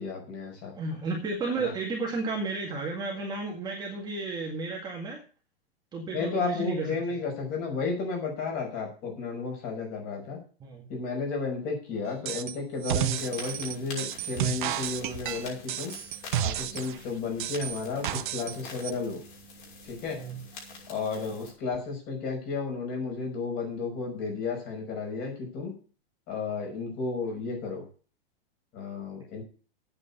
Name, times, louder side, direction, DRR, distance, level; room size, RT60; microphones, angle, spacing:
voice 1, 0.0-0.7 1.6-1.7 6.1-10.4 10.9-15.9 16.4-19.2 19.9-20.2 20.9-25.7 26.3-27.8 28.7-29.4, left 4 dB, 30° left, 1 dB, 5.8 m, -33 dB
voice 2, 0.8-5.2 5.9-6.9 10.6-10.8 20.1-20.4, right 3 dB, 15° right, -1 dB, 2.0 m, -32 dB
sound 1, 12.3-12.6 12.8-17.0 17.4-18.6 18.8-18.9, right 11 dB, 50° right, 1.1 m, -31 dB
sound 2, 13.2-21.5, left 3 dB, 55° left, 6.1 m, -46 dB
8.8 x 8.0 x 8.2 m, 0.37 s
supercardioid pair, 160°, 31 cm